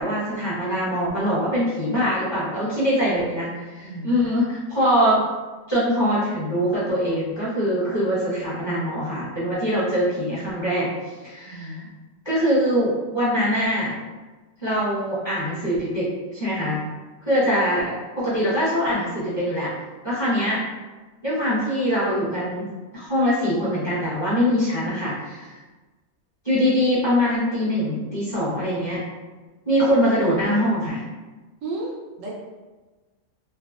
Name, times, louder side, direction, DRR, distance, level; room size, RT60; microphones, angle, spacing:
voice 1, 0.0-5.2 5.7-10.9 11.2-11.8 12.2-13.9 14.6-16.8 17.2-19.7 20.0-20.6 21.2-22.7 22.9-25.6 26.4-29.0 29.6-31.0, equal, 20° left, -11 dB, 0.9 m, -23 dB
voice 2, 3.8-4.2 11.5-11.9 31.6-32.3, right 2 dB, 70° right, -3 dB, 0.9 m, -33 dB
3.3 x 2.2 x 2.3 m, 1.2 s
omnidirectional pair, 1.5 m